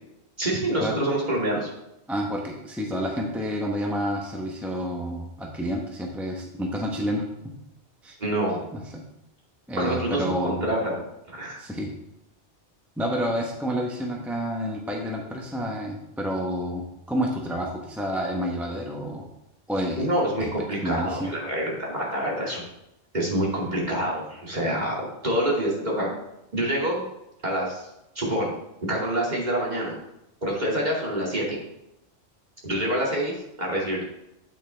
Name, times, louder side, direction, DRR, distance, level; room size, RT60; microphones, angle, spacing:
voice 1, 0.4-1.7 8.2-8.6 9.8-11.0 11.3-11.6 20.0-22.6 23.1-25.0 25.2-26.1 26.5-27.0 27.4-27.9 28.2-28.5 28.9-29.9 30.4-31.6 32.6-34.0, right 1 dB, 40° right, -4 dB, 2.5 m, -26 dB
voice 2, 2.1-7.2 8.0-8.2 8.7-9.0 9.7-10.7 11.6-11.9 13.0-19.2 19.7-20.1 20.4-21.3, equal, ahead, 0 dB, 0.9 m, -29 dB
8.9 x 8.7 x 3.4 m, 0.86 s
omnidirectional pair, 1.2 m